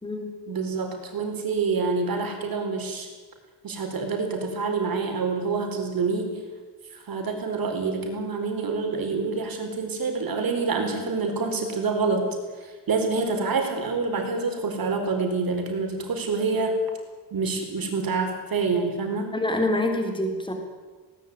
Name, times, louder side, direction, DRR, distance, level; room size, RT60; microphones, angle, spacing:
voice 1, 0.5-3.1 3.6-6.4 6.9-12.3 12.6-16.8 17.3-19.3, right 4 dB, 55° right, 4 dB, 4.6 m, -27 dB
voice 2, 19.3-20.5, left 1 dB, 10° left, 4 dB, 3.5 m, -26 dB
20.0 x 18.5 x 9.7 m, 1.4 s
wide cardioid pair, 175°, 43 cm